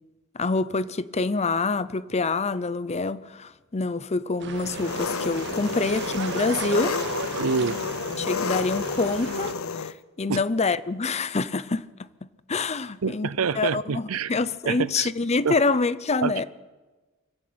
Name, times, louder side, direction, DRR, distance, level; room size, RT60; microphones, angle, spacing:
voice 1, 0.3-7.0 8.2-11.9 12.5-13.3 13.6-16.4, left 3 dB, 30° left, 0.6 m, -26 dB
sound 1, 4.4-9.5, right 4 dB, 55° right, 1.6 m, -35 dB
Engine, 4.7-9.9, left 5 dB, 80° left, 0.7 m, -31 dB
voice 2, 7.4-7.8 10.3-10.4 13.0-14.3 14.7-15.1 15.4-15.6 16.2-16.3, right 5 dB, 85° right, 0.7 m, -26 dB
24.5 x 15.0 x 8.8 m
head